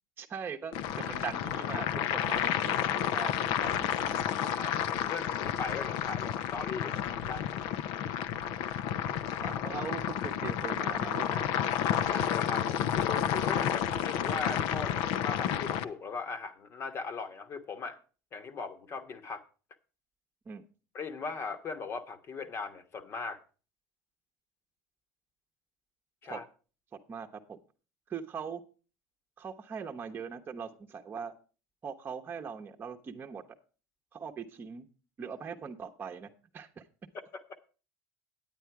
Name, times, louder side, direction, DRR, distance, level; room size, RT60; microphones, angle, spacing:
voice 1, 0.2-4.2 9.4-11.7 20.5-20.6 26.3-26.4 27.1-27.6 28.1-28.6 29.4-31.3 31.8-33.4 34.1-34.8 35.2-36.8, right 6 dB, 30° right, 0.9 m, -41 dB
sound 1, 0.7-15.8, left 10 dB, 70° left, 0.7 m, -31 dB
voice 2, 4.4-7.6 12.0-18.0 18.3-19.4 20.9-23.4 26.2-26.4 37.1-37.7, left 4 dB, 40° left, 1.2 m, -39 dB
9.3 x 9.1 x 4.7 m
supercardioid pair, 95°, 7 cm